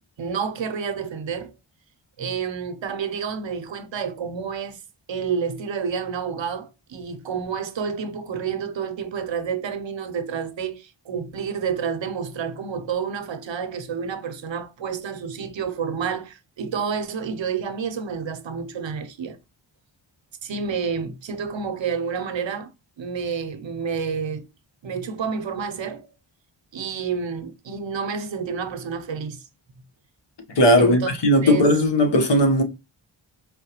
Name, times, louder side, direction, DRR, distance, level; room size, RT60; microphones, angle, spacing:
voice 1, 0.2-1.5 2.2-4.8 5.1-19.4 20.4-22.7 23.0-24.4 24.8-26.1 26.7-29.4 30.8-31.1 31.4-31.8, right 6 dB, 70° right, 0.6 m, -29 dB
voice 2, 30.6-32.6, equal, 60° left, 1.0 m, -17 dB
4.6 x 2.1 x 2.8 m
wide cardioid pair, 85°, 47 cm